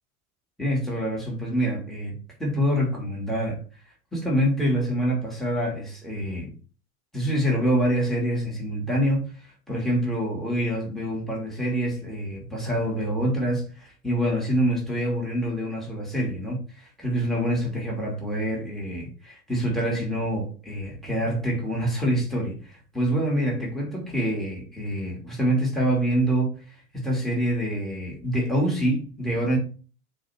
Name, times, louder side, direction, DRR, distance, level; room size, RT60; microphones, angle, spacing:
voice 1, 0.6-3.6 4.1-6.5 7.1-29.6, equal, ahead, 2.9 m, -26 dB
6.2 x 3.3 x 4.6 m
hypercardioid pair, 90°, 43 cm